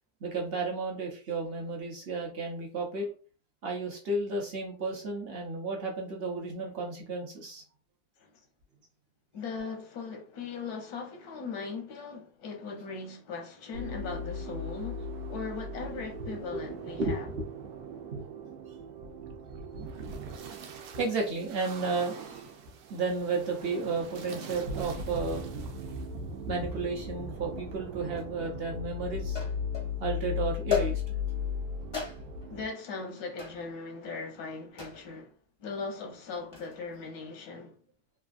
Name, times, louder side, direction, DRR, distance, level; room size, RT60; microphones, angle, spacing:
voice 1, 0.2-3.1 3.6-7.6 16.5-16.6 17.0-17.4 18.1-18.3 20.1-20.5 20.7-22.4 22.9-25.5 26.5-29.4 30.0-31.0, right 3 dB, 55° right, 0.7 m, -33 dB
voice 2, 9.3-17.3 32.5-37.8, left 4 dB, 90° left, 1.2 m, -39 dB
sound 1, 13.7-32.7, left 3 dB, 90° right, 1.1 m, -38 dB
sound 2, 28.2-28.3 29.3-29.9 30.7-31.3 31.9-32.5 33.4-33.7 34.8-35.1 36.3-36.7, left 6 dB, 35° left, 0.4 m, -34 dB
3.3 x 2.3 x 2.4 m
omnidirectional pair, 1.6 m